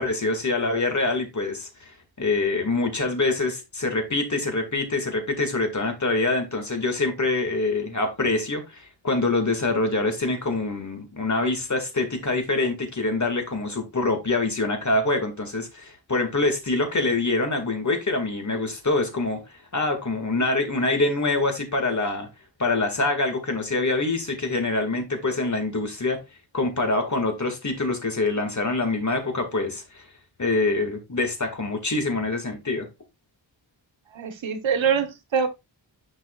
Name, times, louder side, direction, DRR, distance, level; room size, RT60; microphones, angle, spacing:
voice 1, 0.0-1.7 2.2-19.4 19.7-22.3 22.6-26.2 26.5-30.0 30.4-32.9, left 2 dB, 40° left, 2.1 m, -25 dB
voice 2, 34.1-35.5, right 7 dB, 80° right, 1.2 m, -24 dB
9.8 x 5.3 x 2.4 m
wide cardioid pair, 100°, 45 cm